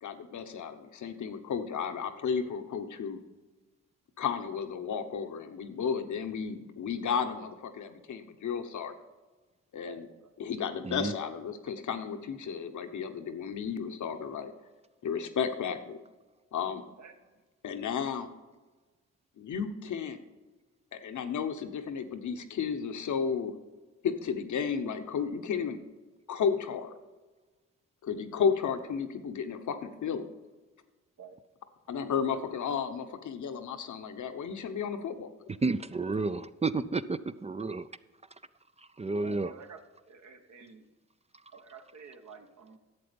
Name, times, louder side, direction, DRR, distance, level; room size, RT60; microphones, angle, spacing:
voice 1, 0.0-3.2 4.2-8.9 9.7-10.1 10.4-14.5 15.0-16.0 16.5-16.8 17.6-18.3 19.4-20.2 20.9-23.5 24.0-25.8 26.3-26.9 28.0-30.3 31.9-35.3, left 6 dB, 70° left, 8 dB, 1.1 m, -33 dB
voice 2, 9.8-10.3 17.0-17.1 31.2-31.3 39.2-39.8 40.1-40.8 41.5-42.8, right 5 dB, 65° right, 5 dB, 1.4 m, -49 dB
voice 3, 35.6-37.9 38.8-39.6 41.5-41.6, right 3 dB, 20° right, 12 dB, 0.5 m, -31 dB
11.5 x 7.7 x 5.3 m, 1.2 s
cardioid pair, 60°, 30 cm